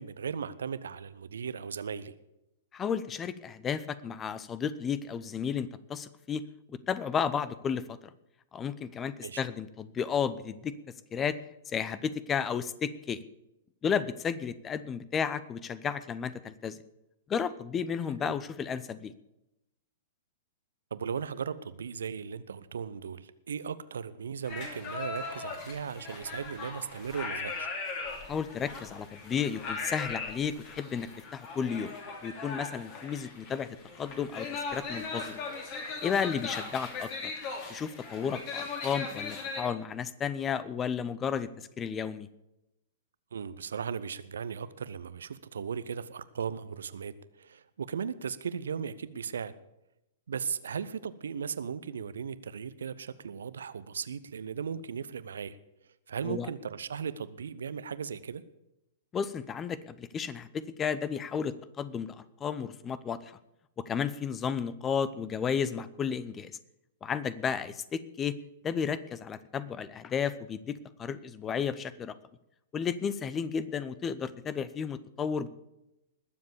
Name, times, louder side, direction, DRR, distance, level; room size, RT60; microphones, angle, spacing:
voice 1, 0.0-2.1 9.2-9.4 18.2-18.3 20.9-27.7 43.3-49.5 50.3-55.6 56.1-58.4, right 7 dB, 65° right, 15 dB, 0.8 m, -37 dB
voice 2, 2.7-6.4 6.7-7.8 8.5-10.8 11.1-11.4 11.7-13.2 13.8-16.8 17.3-19.1 28.2-31.9 32.2-33.7 34.0-35.4 36.0-37.3 37.7-41.5 41.8-42.3 56.2-56.5 59.1-63.4 63.9-66.5 67.0-68.3 68.6-72.1 72.7-75.5, left 7 dB, 20° left, 16 dB, 0.7 m, -33 dB
sound 1, 24.4-39.6, left 4 dB, 35° left, 3.3 m, -39 dB
20.0 x 7.5 x 7.0 m, 0.88 s
figure-of-eight pair, 105°, 0 cm